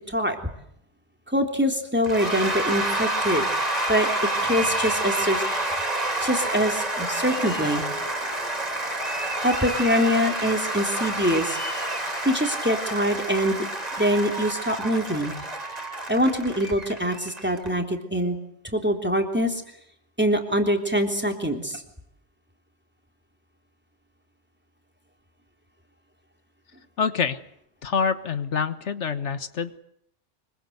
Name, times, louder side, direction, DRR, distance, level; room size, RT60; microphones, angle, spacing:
voice 1, 1.3-3.4 3.9-5.4 6.2-7.8 9.4-11.6 12.2-13.5 14.0-15.3 16.1-18.4 18.7-19.6 20.2-21.8, equal, 10° right, 4 dB, 3.4 m, -24 dB
Cheering / Applause / Crowd, 2.0-17.7, right 1 dB, 35° right, 3.5 m, -28 dB
voice 2, 27.0-27.4 27.8-29.8, left 6 dB, 80° left, 12 dB, 1.5 m, -26 dB
25.0 x 23.5 x 8.1 m, 0.73 s
omnidirectional pair, 1.2 m